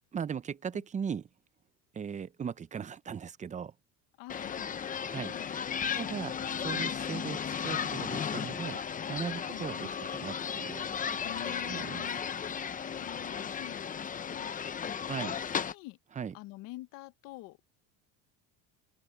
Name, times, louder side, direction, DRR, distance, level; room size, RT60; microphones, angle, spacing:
voice 1, 0.1-1.3 1.9-3.7 5.1-5.3 5.9-6.3 6.6-8.8 9.1-10.9 11.6-12.1 15.0-15.4 16.2-16.3, right 7 dB, 20° right, 0.7 m, -38 dB
voice 2, 4.2-6.1 6.9-7.0 9.5-9.9 11.2-12.2 12.9-14.5 15.2-16.0 16.3-17.7, left 18 dB, 70° left, 1.4 m, -48 dB
sound 1, 4.3-15.7, left 7 dB, 25° left, 0.9 m, -35 dB
open air
cardioid pair, 130°, 35 cm